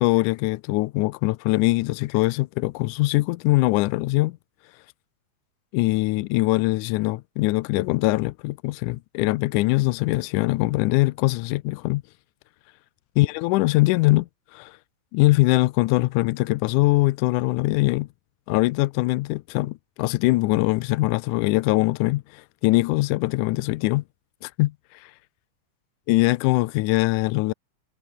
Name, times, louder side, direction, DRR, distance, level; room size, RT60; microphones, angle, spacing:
voice 1, 0.0-4.4 5.7-12.0 13.2-14.8 15.1-18.1 18.5-24.0 24.4-24.7 25.0-25.1 26.1-27.5, left 20 dB, 85° left, 2.1 m, -22 dB
omnidirectional pair, 3.6 m